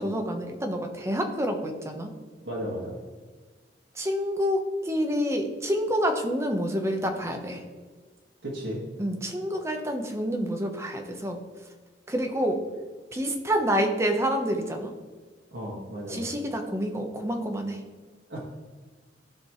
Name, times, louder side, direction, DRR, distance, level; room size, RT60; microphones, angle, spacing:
voice 1, 0.0-2.1 3.9-7.6 9.0-11.4 12.1-12.6 13.1-14.9 16.1-17.8, equal, 15° right, 3 dB, 1.0 m, -28 dB
voice 2, 2.4-3.0 8.4-8.8 15.5-16.3 18.3-18.4, equal, 90° right, -6 dB, 1.9 m, -34 dB
15.0 x 5.2 x 3.1 m, 1.5 s
head